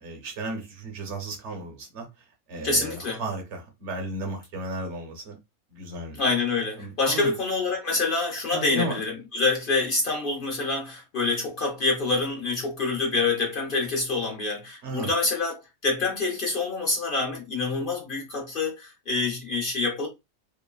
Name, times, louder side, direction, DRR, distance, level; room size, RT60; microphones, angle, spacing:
voice 1, 0.0-5.4 5.7-6.2 6.8-7.3 8.5-9.0 14.8-15.1, right 2 dB, 55° right, 1.0 m, -34 dB
voice 2, 2.6-3.2 6.2-20.1, left 3 dB, 50° left, 0.7 m, -26 dB
3.0 x 2.1 x 2.2 m
omnidirectional pair, 1.6 m